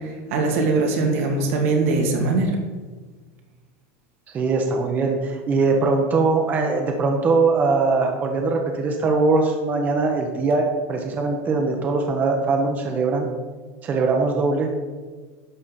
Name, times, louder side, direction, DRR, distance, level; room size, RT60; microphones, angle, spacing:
voice 1, 0.3-2.6, right 3 dB, 80° right, 2 dB, 2.2 m, -21 dB
voice 2, 4.3-13.3 13.8-14.7, right 3 dB, 20° right, 3 dB, 1.0 m, -21 dB
11.0 x 4.2 x 7.1 m, 1.4 s
supercardioid pair, 165°, 7 cm